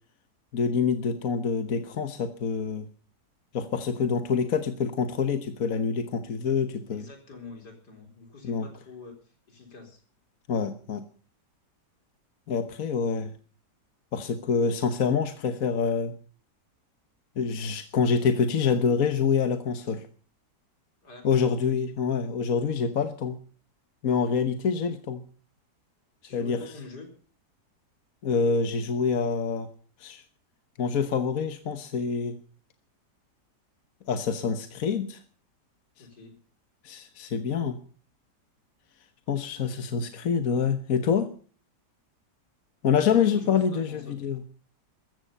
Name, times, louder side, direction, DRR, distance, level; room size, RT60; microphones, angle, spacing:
voice 1, 0.5-2.9 3.5-7.1 8.4-8.7 10.5-11.0 12.5-13.3 14.1-16.1 17.4-20.1 21.2-23.3 24.0-25.2 26.3-26.6 28.2-29.7 30.0-30.2 30.8-32.4 34.1-35.2 36.8-37.8 39.3-41.3 42.8-44.4, left 6 dB, 60° left, 9 dB, 1.5 m, -26 dB
voice 2, 6.9-10.0 21.0-21.9 26.2-27.1 36.0-36.4 42.9-44.2, left 3 dB, 75° left, 4 dB, 4.5 m, -46 dB
14.5 x 14.5 x 5.5 m, 0.42 s
omnidirectional pair, 1.8 m